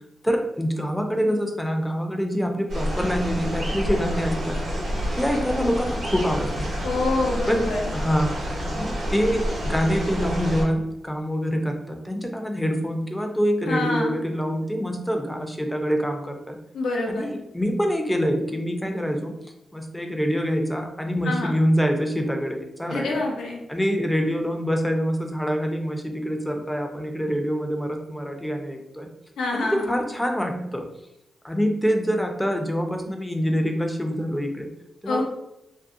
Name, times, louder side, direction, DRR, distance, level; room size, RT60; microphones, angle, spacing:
voice 1, 0.2-4.6 5.2-6.7 7.5-8.3 8.7-16.6 17.1-19.3 19.7-23.2 23.7-29.1 29.5-30.9 31.4-34.7 35.0-35.2, equal, 10° left, 3 dB, 0.4 m, -25 dB
sound 1, 2.7-10.6, equal, 85° right, 1.0 m, -28 dB
voice 2, 6.8-7.8 13.7-14.2 16.7-17.3 21.3-21.5 22.9-23.6 29.4-30.0 35.1-35.2, left 2 dB, 85° left, -1 dB, 0.6 m, -26 dB
2.6 x 2.0 x 2.5 m, 0.84 s
cardioid pair, 65°, 0 cm